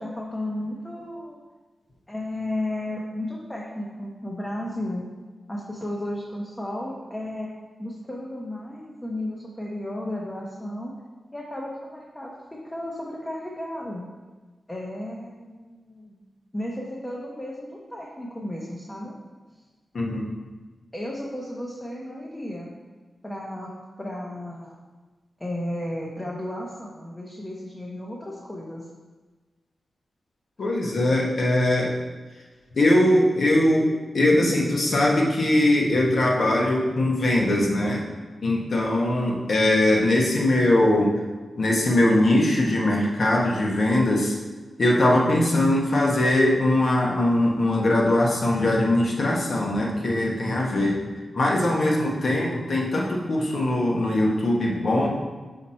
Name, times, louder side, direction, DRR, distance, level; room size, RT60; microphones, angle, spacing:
voice 1, 0.0-1.4 2.1-5.0 5.5-7.5 7.8-10.9 11.3-14.0 14.7-16.2 16.5-19.1 20.9-22.7 23.2-23.7 24.0-24.8 25.4-28.9, left 1 dB, 15° left, -3 dB, 0.9 m, -33 dB
voice 2, 30.6-31.9 32.7-33.9 34.1-38.1 38.4-41.1 41.6-44.3 44.8-51.0 51.3-55.1, left 1 dB, 60° left, -2 dB, 1.3 m, -21 dB
5.7 x 4.2 x 4.3 m, 1.3 s
wide cardioid pair, 90°, 0 cm